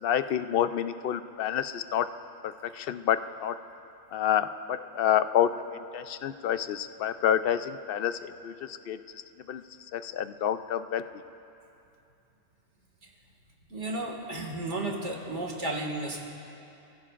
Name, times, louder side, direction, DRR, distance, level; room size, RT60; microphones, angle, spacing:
voice 1, 0.0-2.1 2.4-3.6 4.1-5.5 5.9-9.0 9.5-9.6 9.9-11.0, left 10 dB, 60° left, 11 dB, 0.6 m, -28 dB
voice 2, 13.7-16.2, right 2 dB, 65° right, 0 dB, 2.4 m, -33 dB
27.5 x 16.0 x 2.5 m, 2.7 s
omnidirectional pair, 1.3 m